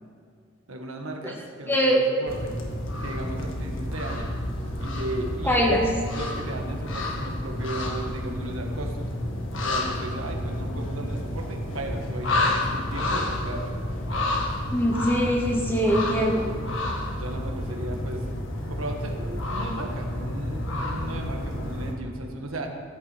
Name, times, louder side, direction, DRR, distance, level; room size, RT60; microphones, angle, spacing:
voice 1, 0.7-2.5 3.0-4.3 4.8-5.7 6.1-9.1 9.6-13.7 17.2-18.3 18.7-22.7, right 1 dB, 80° right, 2 dB, 1.6 m, -36 dB
voice 2, 1.7-2.0 5.4-5.8 14.7-16.5, equal, 10° left, -2 dB, 2.1 m, -22 dB
sound 1, 2.3-21.9, left 1 dB, 65° left, 1.6 m, -30 dB
15.0 x 9.2 x 4.5 m, 2.1 s
head